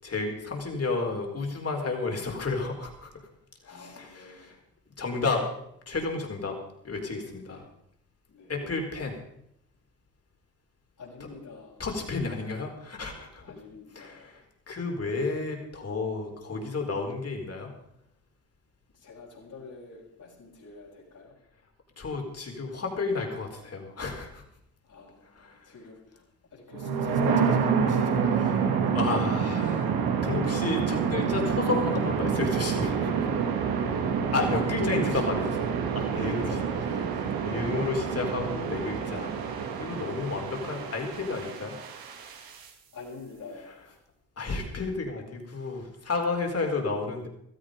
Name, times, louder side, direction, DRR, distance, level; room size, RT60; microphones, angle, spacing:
voice 1, 0.0-3.3 3.7-4.6 5.0-5.5 5.9-6.6 6.8-7.7 8.5-9.2 11.8-13.4 13.9-17.7 22.0-24.4 25.3-25.7 28.4-28.5 28.9-33.1 34.3-36.5 37.0-39.3 39.8-41.8 44.4-47.3, left 3 dB, 40° left, 2 dB, 4.4 m, -32 dB
voice 2, 3.6-4.5 7.4-7.6 8.3-8.5 11.0-11.9 12.4-12.5 13.4-14.3 18.9-21.3 24.8-26.2 26.5-28.6 34.6-35.2 36.1-36.9 42.9-44.0, left 3 dB, 55° left, -3 dB, 6.6 m, -43 dB
sound 1, 26.7-42.7, right 6 dB, 75° right, 2.2 m, -28 dB
16.0 x 13.5 x 5.2 m, 0.76 s
supercardioid pair, 60°, 36 cm